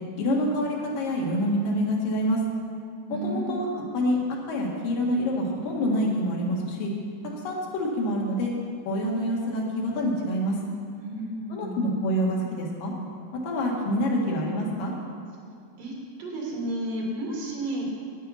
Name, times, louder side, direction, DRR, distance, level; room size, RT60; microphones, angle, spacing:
voice 1, 0.2-2.4 3.1-3.7 3.9-4.2 4.5-6.9 7.4-8.5 8.9-10.6 11.5-12.9 13.4-14.9, equal, 85° left, -2 dB, 3.4 m, -26 dB
voice 2, 3.1-3.9 11.0-11.8 15.8-15.9 16.2-17.9, right 1 dB, 85° right, -2 dB, 3.8 m, -32 dB
11.0 x 9.2 x 5.6 m, 2.5 s
omnidirectional pair, 3.8 m